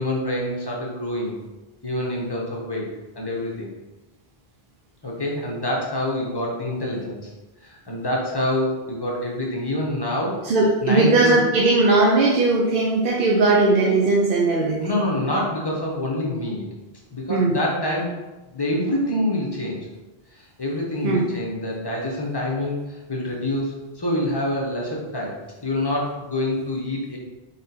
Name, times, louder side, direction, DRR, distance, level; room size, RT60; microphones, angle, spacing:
voice 1, 0.0-1.4 1.8-2.9 3.1-3.7 5.0-7.3 7.6-10.5 10.8-11.4 14.8-16.7 17.1-18.2 18.5-19.9 20.3-27.2, left 1 dB, 25° left, -3 dB, 0.6 m, -26 dB
voice 2, 10.5-15.0 17.3-17.6 21.0-21.3, right 3 dB, 60° right, -3 dB, 0.7 m, -18 dB
4.0 x 3.6 x 2.7 m, 1.1 s
omnidirectional pair, 1.1 m